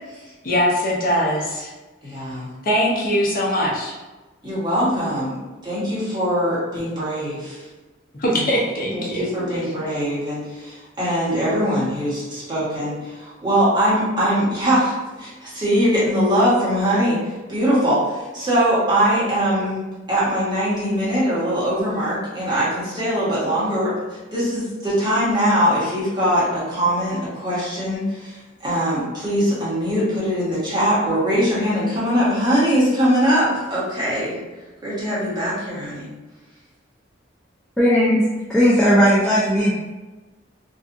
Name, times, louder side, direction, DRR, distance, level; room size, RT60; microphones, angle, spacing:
voice 1, 0.4-1.7 2.6-4.0 8.1-9.9, equal, 50° left, -4 dB, 0.6 m, -22 dB
voice 2, 2.0-2.5 4.4-7.6 8.3-8.4 8.9-19.8 20.1-23.9 24.3-34.4 34.8-36.1, equal, 25° right, -9 dB, 1.1 m, -21 dB
voice 3, 37.8-38.2 38.5-39.7, equal, 5° left, -7 dB, 0.4 m, -16 dB
2.7 x 2.4 x 2.5 m, 1.2 s
head